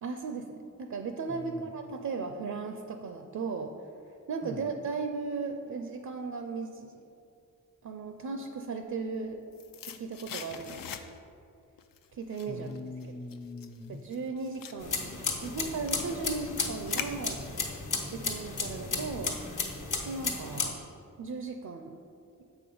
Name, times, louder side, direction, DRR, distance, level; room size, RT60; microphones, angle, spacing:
voice 1, 0.0-3.7 4.3-7.0 7.8-9.4 9.9-10.8 12.1-12.7 13.1-13.2 13.9-17.6 18.1-19.8 20.0-20.8 21.2-22.0, right 4 dB, 60° right, 6 dB, 0.5 m, -36 dB
voice 2, 1.3-1.7 4.4-4.6 12.5-14.0, left 3 dB, 10° left, 7 dB, 0.4 m, -42 dB
sound 1, 9.0-11.4 11.8-17.7 18.0-18.1, left 8 dB, 85° left, 0.5 m, -44 dB
sound 2, 14.8-20.7, left 4 dB, 65° left, 1.2 m, -34 dB
7.2 x 5.1 x 5.4 m, 2.5 s
wide cardioid pair, 115°, 33 cm